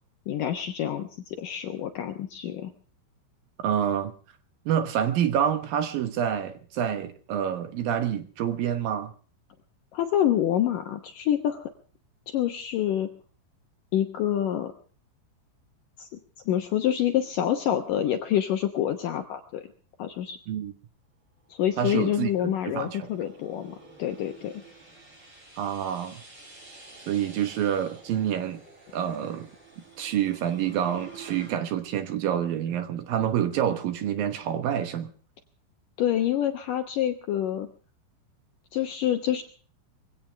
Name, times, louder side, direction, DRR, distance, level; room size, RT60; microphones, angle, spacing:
voice 1, 0.3-2.7 9.9-11.7 12.3-13.1 13.9-14.7 16.0-16.1 16.5-19.6 20.0-20.4 21.5-24.5 36.0-37.7 38.7-39.4, left 11 dB, 75° left, 6 dB, 2.0 m, -27 dB
voice 2, 3.6-4.1 4.7-9.1 20.5-20.7 21.8-23.1 25.6-26.2 27.1-28.6 28.9-29.5 30.0-35.1, right 9 dB, 70° right, 9 dB, 2.4 m, -27 dB
sound 1, 21.4-31.6, right 3 dB, 30° right, 7.6 m, -50 dB
22.5 x 16.5 x 3.3 m, 0.41 s
omnidirectional pair, 5.3 m